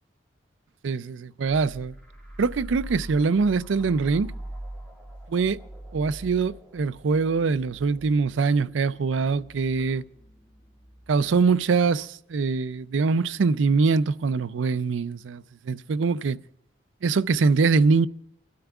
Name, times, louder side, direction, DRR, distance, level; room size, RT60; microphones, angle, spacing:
voice 1, 0.8-2.0 2.4-4.3 5.3-5.6 5.9-10.0 11.1-16.4 17.0-18.1, right 4 dB, 80° right, 0.4 m, -23 dB
sound 1, 1.4-12.8, right 1 dB, 5° left, 1.8 m, -43 dB
29.5 x 12.5 x 2.4 m
head